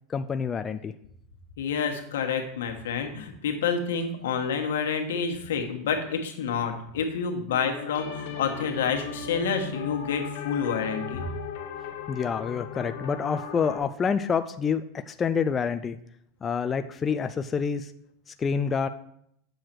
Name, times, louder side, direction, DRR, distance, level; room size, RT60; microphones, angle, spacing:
voice 1, 0.1-0.9 11.2-11.3 12.1-16.0 16.4-17.9 18.4-18.9, left 6 dB, 25° left, 9 dB, 0.4 m, -27 dB
voice 2, 1.6-11.2, left 6 dB, 90° left, 4 dB, 1.3 m, -28 dB
sound 1, 7.5-13.8, left 6 dB, 70° left, 1.4 m, -37 dB
7.9 x 6.5 x 4.5 m, 0.72 s
supercardioid pair, 125°, 0 cm